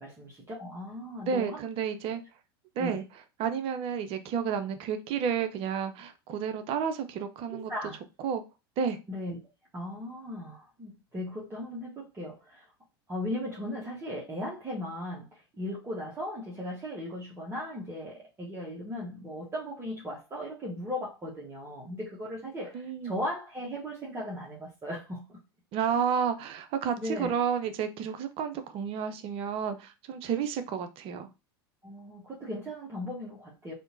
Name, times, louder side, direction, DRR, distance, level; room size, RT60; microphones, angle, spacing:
voice 1, 0.0-1.7 2.8-3.0 7.5-8.0 9.1-9.4 9.7-12.7 13.1-25.4 27.0-27.3 31.8-33.7, left 1 dB, 20° right, 1.3 m, -37 dB
voice 2, 1.2-2.2 2.8-3.0 3.4-7.7 8.2-8.4 8.8-9.0 22.7-23.2 25.7-31.3, right 7 dB, 45° right, 0.6 m, -31 dB
3.5 x 2.8 x 2.6 m
hypercardioid pair, 90°, 13 cm